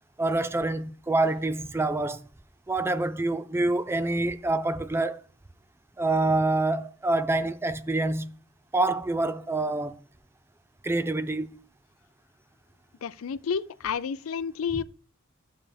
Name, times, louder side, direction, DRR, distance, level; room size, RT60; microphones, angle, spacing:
voice 1, 0.2-2.2 2.7-5.2 6.0-8.3 8.7-10.0 10.8-11.5, right 2 dB, 10° right, 0.4 m, -26 dB
voice 2, 13.0-14.8, left 6 dB, 90° left, 0.4 m, -30 dB
11.0 x 7.2 x 3.4 m
head